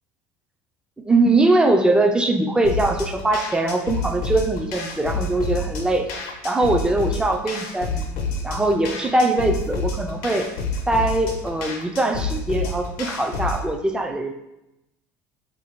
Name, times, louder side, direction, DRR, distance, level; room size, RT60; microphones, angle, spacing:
voice 1, 1.0-6.1 6.4-8.2 8.4-10.5 10.9-14.3, right 2 dB, 10° right, 5 dB, 0.4 m, -21 dB
sound 1, 2.6-13.7, left 3 dB, 80° left, 0.6 m, -29 dB
2.7 x 2.6 x 4.3 m, 0.90 s
supercardioid pair, 100°, 8 cm